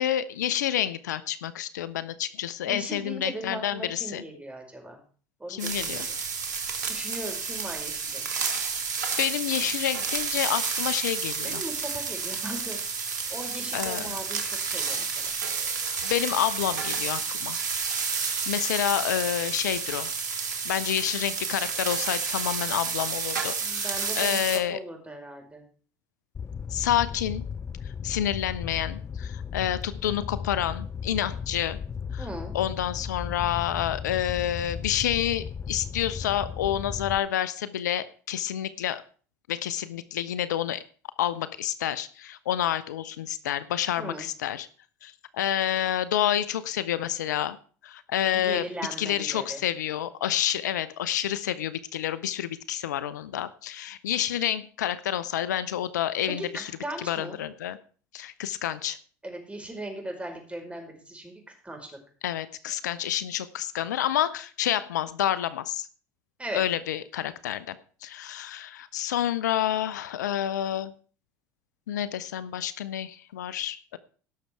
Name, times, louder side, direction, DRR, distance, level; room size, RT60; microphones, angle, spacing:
voice 1, 0.0-4.2 5.5-6.1 9.2-11.6 13.7-14.2 16.0-17.6 18.2-20.1 20.6-24.8 26.7-27.4 28.0-31.8 32.1-32.3 32.5-39.0 39.5-40.8 41.2-44.7 45.0-47.6 47.8-48.7 49.0-56.7 57.0-57.8 58.1-59.0 62.2-65.9 66.5-67.8 68.0-70.9 71.9-74.0, left 11 dB, 85° left, 16 dB, 0.7 m, -29 dB
voice 2, 2.7-5.0 5.4-6.1 6.9-8.3 11.4-12.8 13.3-15.3 23.6-24.4 24.7-25.6 32.2-32.5 44.0-44.3 48.3-49.6 56.4-57.4 59.2-61.9 66.4-66.6, right 1 dB, 15° right, 3 dB, 5.2 m, -38 dB
sound 1, 5.6-24.6, right 5 dB, 90° right, 1.7 m, -30 dB
Fire, 26.3-37.2, left 7 dB, 30° left, 0.8 m, -36 dB
17.5 x 6.7 x 4.6 m, 0.41 s
hypercardioid pair, 75°, 9 cm